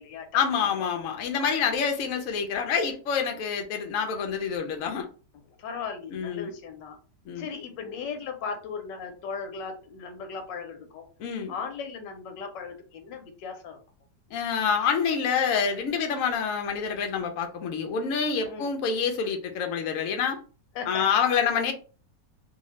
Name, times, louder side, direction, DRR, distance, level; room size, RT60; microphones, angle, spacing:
voice 1, 0.3-5.1 6.1-6.5 7.3-7.5 11.2-11.5 14.3-20.4 20.9-21.7, left 6 dB, 65° left, 0.9 m, -27 dB
voice 2, 5.5-7.0 7.3-11.1 11.5-13.8 18.5-18.7 20.7-21.2, left 5 dB, 90° left, 1.4 m, -37 dB
2.7 x 2.7 x 3.0 m
omnidirectional pair, 1.9 m